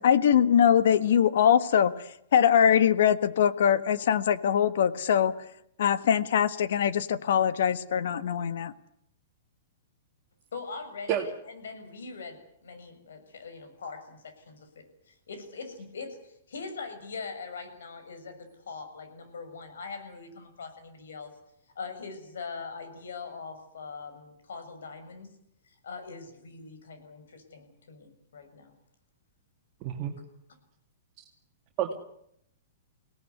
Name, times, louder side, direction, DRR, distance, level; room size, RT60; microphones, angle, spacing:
voice 1, 0.0-2.0 2.3-5.3 5.8-8.7, left 8 dB, 70° left, 14 dB, 1.5 m, -22 dB
voice 2, 10.5-21.3 21.8-25.4 25.7-28.7, left 4 dB, 90° left, 8 dB, 6.8 m, -42 dB
voice 3, 29.8-30.1 31.8-31.9, right 11 dB, 35° right, 1 dB, 2.3 m, -28 dB
24.0 x 18.0 x 9.7 m, 0.76 s
hypercardioid pair, 150°, 0 cm